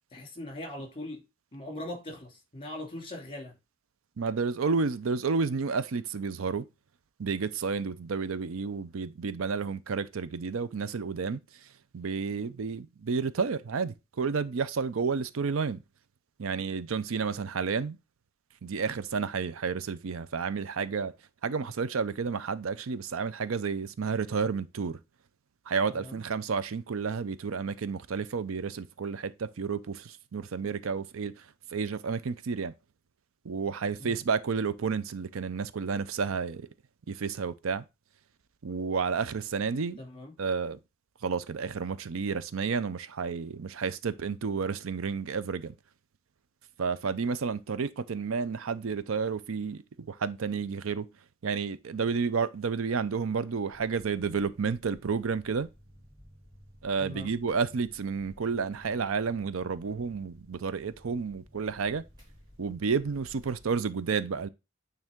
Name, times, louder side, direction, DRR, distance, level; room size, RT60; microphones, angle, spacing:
voice 1, 0.1-1.2 1.5-3.6 26.0-26.2 34.0-34.1 40.0-40.3 57.0-57.3, left 1 dB, 25° left, 2.4 m, -40 dB
voice 2, 4.2-6.6 7.2-11.4 11.9-15.8 16.4-18.0 18.6-21.1 21.4-25.0 25.7-31.5 31.7-32.7 33.4-36.7 37.1-37.8 38.6-40.0 40.4-40.8 41.2-45.7 46.8-51.1 51.4-55.7 56.8-62.0 62.6-64.5, right 5 dB, 90° right, 0.5 m, -31 dB
sound 1, 53.7-63.7, equal, 20° right, 2.9 m, -55 dB
9.0 x 3.5 x 3.6 m
head